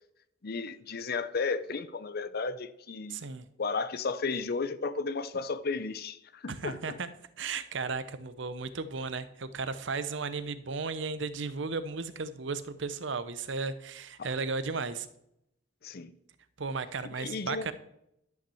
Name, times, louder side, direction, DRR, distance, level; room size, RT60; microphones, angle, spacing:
voice 1, 0.4-3.2 3.6-7.0 14.2-14.3 15.8-16.1 17.2-17.7, left 4 dB, 50° left, 0.6 m, -34 dB
voice 2, 3.1-3.4 6.5-7.1 7.4-15.1 16.6-17.7, right 4 dB, 65° right, 0.8 m, -35 dB
11.5 x 6.0 x 7.0 m
head